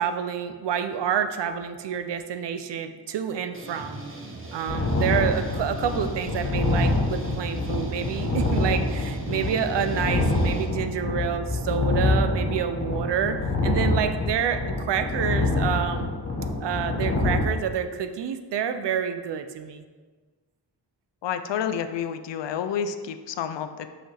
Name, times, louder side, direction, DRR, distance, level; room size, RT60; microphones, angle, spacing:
voice 1, 0.0-4.0 4.5-13.4 13.6-16.1 16.6-19.8, right 8 dB, 75° right, 9 dB, 0.5 m, -28 dB
sound 1, 3.5-10.7, right 2 dB, 30° right, 0.8 m, -39 dB
sound 2, 4.7-17.4, left 2 dB, 35° left, 0.9 m, -26 dB
voice 2, 21.2-24.0, left 8 dB, 80° left, 9 dB, 0.5 m, -29 dB
5.7 x 5.3 x 3.3 m, 1.4 s
wide cardioid pair, 160°, 42 cm